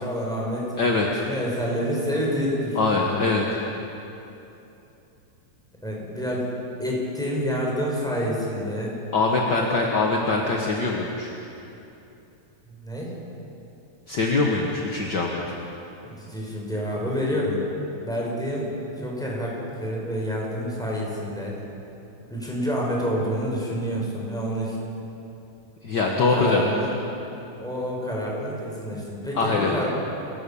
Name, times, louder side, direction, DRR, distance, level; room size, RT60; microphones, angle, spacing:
voice 1, 0.0-0.8 1.2-3.3 5.8-6.5 6.8-9.0 12.7-13.1 16.0-17.7 18.0-18.7 19.0-21.6 22.3-24.8 26.1-26.9 27.6-29.9, equal, ahead, -3 dB, 5.2 m, -28 dB
voice 2, 0.8-1.2 2.7-3.5 9.1-11.3 14.1-15.4 25.8-26.7 29.3-29.8, left 3 dB, 45° left, -1 dB, 1.4 m, -23 dB
28.0 x 16.0 x 7.1 m, 2.9 s
omnidirectional pair, 4.0 m